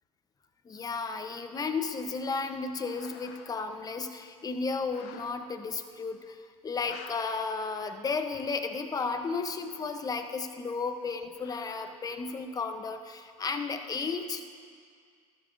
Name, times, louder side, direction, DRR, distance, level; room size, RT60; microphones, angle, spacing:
voice 1, 0.6-14.4, left 4 dB, 20° left, 7 dB, 1.0 m, -33 dB
sound 1, 2.5-3.6 4.0-4.1 4.8-5.3 5.9-6.0 6.7-7.1 8.1-8.2 9.0-10.6 11.2-12.1, left 9 dB, 60° left, 1.0 m, -52 dB
19.0 x 13.5 x 2.7 m, 2.1 s
hypercardioid pair, 95°, 19 cm